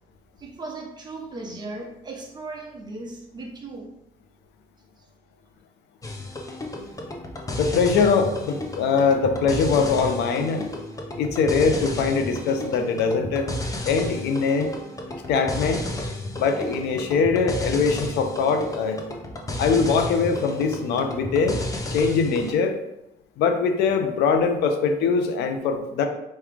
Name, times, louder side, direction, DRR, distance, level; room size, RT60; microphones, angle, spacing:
voice 1, 0.4-3.9, right 2 dB, 25° right, 0 dB, 1.1 m, -37 dB
sound 1, 6.0-22.5, left 1 dB, 20° left, 0.7 m, -32 dB
voice 2, 7.5-10.7 11.2-13.5 13.8-14.7 15.3-15.8 16.3-19.0 19.6-21.6 21.9-22.8 23.4-26.1, left 5 dB, 80° left, 6 dB, 0.7 m, -22 dB
4.6 x 3.2 x 3.5 m, 0.86 s
cardioid pair, 110°, 17 cm